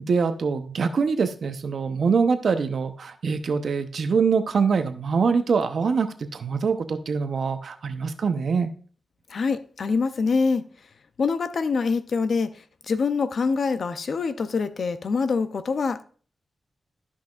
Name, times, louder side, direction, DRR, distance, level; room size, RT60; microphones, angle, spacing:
voice 1, 0.1-8.7, right 5 dB, 65° right, 0.7 m, -24 dB
voice 2, 9.3-10.6 11.2-12.5 12.9-16.0, left 4 dB, 65° left, 0.5 m, -25 dB
13.0 x 5.6 x 2.4 m
wide cardioid pair, 95°, 0 cm